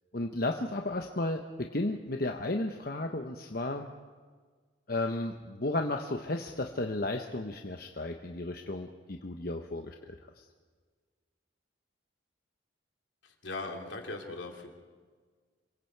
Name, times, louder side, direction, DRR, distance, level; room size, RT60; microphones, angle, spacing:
voice 1, 0.1-3.9 4.9-10.4, left 2 dB, 50° left, 4 dB, 1.0 m, -34 dB
voice 2, 13.2-14.7, left 2 dB, 75° left, 2 dB, 3.1 m, -39 dB
27.5 x 23.0 x 4.7 m, 1.6 s
head